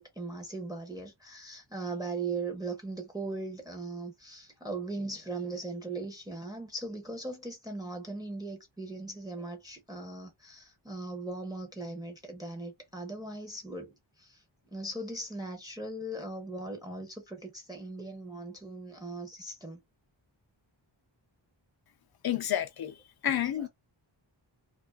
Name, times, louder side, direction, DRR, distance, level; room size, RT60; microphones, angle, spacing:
voice 1, 0.0-14.4 14.7-19.8 23.5-23.7, right 2 dB, 10° right, 0.6 m, -39 dB
voice 2, 22.2-22.9 23.2-23.7, left 10 dB, 55° left, 0.5 m, -29 dB
2.4 x 2.3 x 2.2 m
wide cardioid pair, 105°, 47 cm